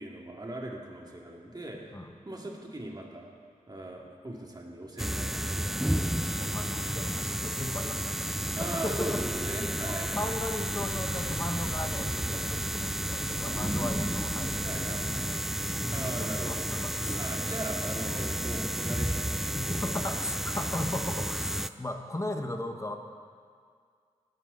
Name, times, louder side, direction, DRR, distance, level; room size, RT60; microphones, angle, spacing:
voice 1, 0.0-1.9 2.2-3.3 3.7-6.2 8.5-10.2 14.6-15.4 15.9-16.7 17.2-20.3, right 1 dB, 30° right, -1 dB, 2.7 m, -40 dB
sound 1, 5.0-21.7, equal, 5° right, 0.4 m, -31 dB
voice 2, 6.4-9.2 10.1-17.2 19.5-23.0, left 1 dB, 20° left, 5 dB, 1.4 m, -37 dB
sound 2, 9.1-15.0, left 5 dB, 50° left, 0.7 m, -48 dB
19.0 x 11.5 x 4.1 m, 2.1 s
cardioid pair, 55°, 14 cm